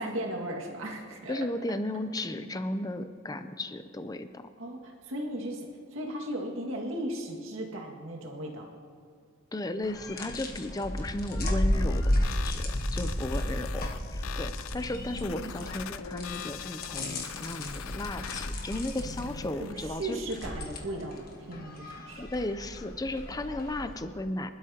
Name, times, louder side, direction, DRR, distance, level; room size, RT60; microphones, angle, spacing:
voice 1, 0.0-1.5 4.6-8.7 14.9-15.5 19.6-22.3, right 1 dB, 70° right, 0 dB, 2.0 m, -36 dB
voice 2, 1.3-4.5 9.5-13.8 14.1-20.2 22.2-24.5, left 1 dB, 20° left, 10 dB, 0.5 m, -35 dB
sound 1, 9.8-24.0, left 1 dB, 45° left, 1.4 m, -33 dB
sound 2, 11.7-19.7, left 8 dB, 75° left, 0.4 m, -42 dB
Slam, 20.3-22.1 22.4-22.8, equal, ahead, 2.8 m, -47 dB
25.0 x 12.0 x 2.9 m, 2.1 s
head